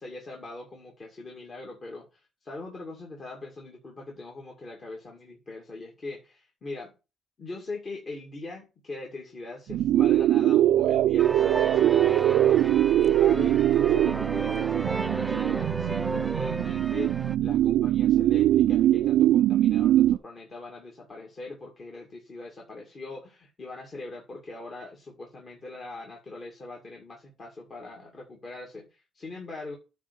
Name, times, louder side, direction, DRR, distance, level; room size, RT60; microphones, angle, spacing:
voice 1, 0.0-6.9 7.4-29.8, left 2 dB, 45° left, 0 dB, 2.3 m, -41 dB
sound 1, 9.7-20.2, right 13 dB, 85° right, 0.3 m, -22 dB
sound 2, 11.2-17.4, right 2 dB, 15° right, 0.4 m, -34 dB
9.2 x 3.6 x 6.9 m, 0.30 s
cardioid pair, 90°, 0 cm